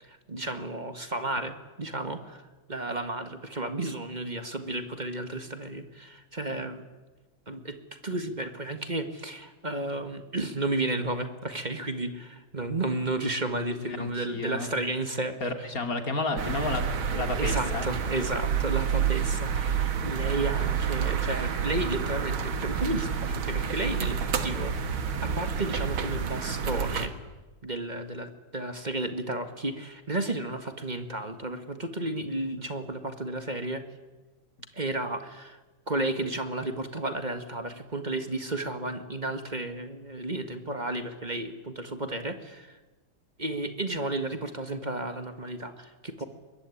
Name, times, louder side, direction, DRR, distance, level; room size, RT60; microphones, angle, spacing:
voice 1, 0.0-6.8 7.5-7.8 8.0-15.7 17.4-24.7 25.2-27.1 27.6-33.9 34.7-35.6 35.9-42.8 43.4-46.2, right 2 dB, 25° right, 8 dB, 1.7 m, -33 dB
voice 2, 13.9-14.7 15.4-17.9, left 2 dB, 45° left, 6 dB, 2.9 m, -31 dB
sound 1, 16.4-27.1, right 7 dB, 90° right, 2.4 m, -29 dB
23.5 x 21.5 x 10.0 m, 1.2 s
omnidirectional pair, 2.2 m